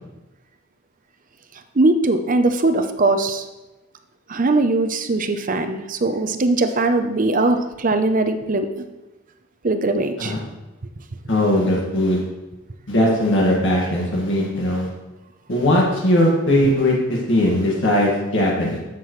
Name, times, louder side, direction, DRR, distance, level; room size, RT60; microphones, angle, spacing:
voice 1, 1.7-3.4 4.3-8.7 9.6-10.3, right 2 dB, 40° right, 8 dB, 0.6 m, -20 dB
voice 2, 11.3-12.2 12.9-14.9 15.5-18.8, left 1 dB, 60° left, -3 dB, 1.9 m, -19 dB
11.0 x 7.6 x 3.2 m, 1.1 s
head